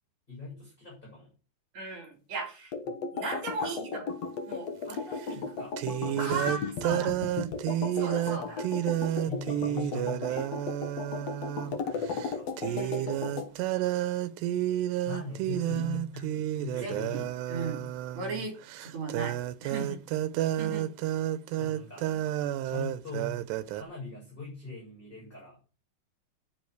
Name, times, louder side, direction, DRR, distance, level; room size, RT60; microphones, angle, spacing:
voice 1, 0.3-1.3 3.8-3.9 4.8-5.8 6.0-6.3 8.3-8.6 9.2-10.5 11.9-12.5 13.5-13.6 14.7-17.3 21.5-22.3 22.6-23.4 23.7-25.6, left 3 dB, 10° left, -3 dB, 7.2 m, -41 dB
voice 2, 1.7-2.7 3.1-4.1 4.5-4.7 6.2-7.1 7.9-8.7 12.6-13.1 16.8-17.2 17.5-17.9 18.1-20.0 20.6-20.9, right 3 dB, 45° right, 3 dB, 4.7 m, -36 dB
sound 1, 2.7-13.5, left 5 dB, 70° left, 1.5 m, -36 dB
sound 2, 4.9-5.0 5.8-11.8 12.1-12.3 12.6-23.8, right 13 dB, 80° right, 2.8 m, -31 dB
10.5 x 7.8 x 7.9 m, 0.37 s
omnidirectional pair, 5.0 m